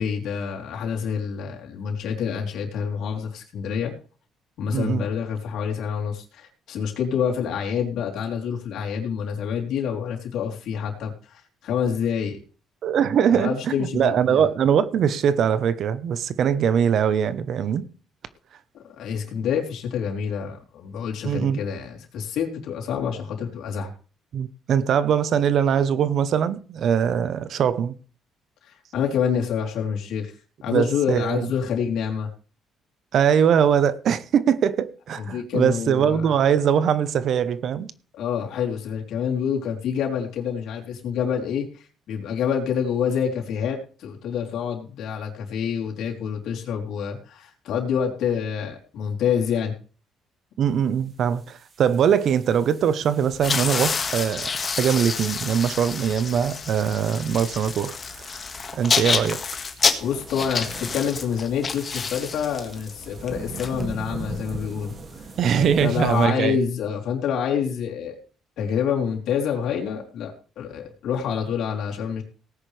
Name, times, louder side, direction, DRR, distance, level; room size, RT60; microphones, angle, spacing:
voice 1, 0.0-3.9 4.6-12.4 13.3-14.5 18.7-23.9 28.6-30.3 30.6-32.3 35.1-36.3 38.2-49.7 60.0-64.9 65.6-68.2 68.6-72.2, left 7 dB, 75° left, 3.6 m, -27 dB
voice 2, 4.7-5.0 12.8-17.9 21.2-21.6 24.3-28.0 30.7-31.5 33.1-37.9 50.6-54.5 54.8-58.0 58.3-58.4 58.7-59.4 65.4-66.6, right 8 dB, 60° right, 0.9 m, -22 dB
sound 1, 51.1-66.3, right 4 dB, 40° right, 2.4 m, -42 dB
sound 2, 53.3-64.4, left 5 dB, 35° left, 1.8 m, -28 dB
18.0 x 9.9 x 3.4 m
cardioid pair, 110°, 0 cm